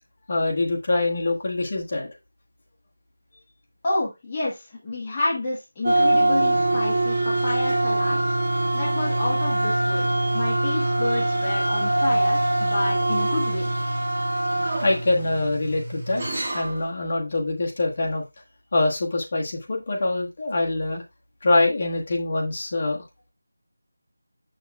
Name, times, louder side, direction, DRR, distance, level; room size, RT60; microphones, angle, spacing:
voice 1, 0.3-2.1 7.5-7.6 14.8-16.2 16.5-18.2 18.7-21.0 21.4-23.0, left 2 dB, 30° left, -1 dB, 1.3 m, -24 dB
voice 2, 3.8-8.2 8.4-10.1 10.3-13.6, left 2 dB, 15° left, -6 dB, 1.1 m, -29 dB
sound 1, 5.8-16.8, right 2 dB, 25° right, 1.9 m, -23 dB
7.3 x 6.4 x 2.3 m, 0.23 s
figure-of-eight pair, 175°, 0 cm